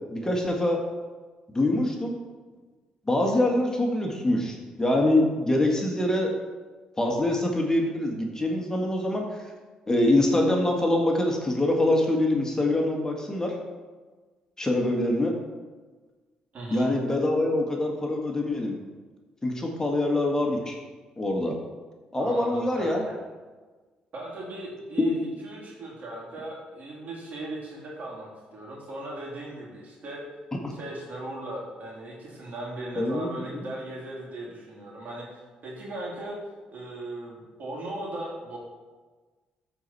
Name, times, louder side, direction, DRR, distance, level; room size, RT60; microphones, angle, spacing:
voice 1, 0.1-0.8 1.5-2.2 3.1-6.3 7.0-9.2 9.9-13.5 14.6-15.3 16.7-18.8 19.4-20.8 21.2-21.6 22.1-23.0 25.0-25.2 30.6-30.7 33.0-33.7, left 1 dB, 20° left, 1 dB, 1.8 m, -24 dB
voice 2, 16.5-16.9 22.2-23.1 24.1-25.2 25.4-30.2 30.7-36.4 36.7-38.6, right 1 dB, 55° right, -3 dB, 3.1 m, -38 dB
13.5 x 4.7 x 4.3 m, 1.4 s
hypercardioid pair, 50°, 3 cm